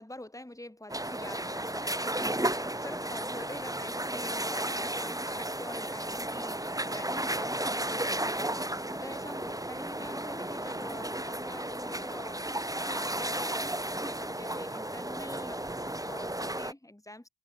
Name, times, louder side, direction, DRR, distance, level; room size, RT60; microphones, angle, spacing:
voice 1, 0.0-17.3, left 1 dB, 5° left, 2.9 m, -46 dB
sound 1, 0.9-16.7, right 1 dB, 10° right, 1.5 m, -34 dB
open air
wide cardioid pair, 115°, 43 cm